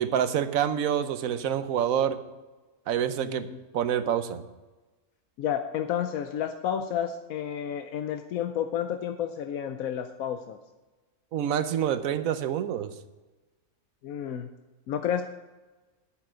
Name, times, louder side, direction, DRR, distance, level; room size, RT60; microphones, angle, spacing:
voice 1, 0.0-2.2 2.9-3.5 3.7-4.4 11.3-12.9, right 9 dB, 80° right, 11 dB, 1.2 m, -27 dB
voice 2, 3.2-3.6 5.4-10.6 14.0-14.5 14.9-15.2, left 9 dB, 85° left, 7 dB, 1.1 m, -31 dB
9.1 x 8.9 x 6.2 m, 1.2 s
omnidirectional pair, 1.4 m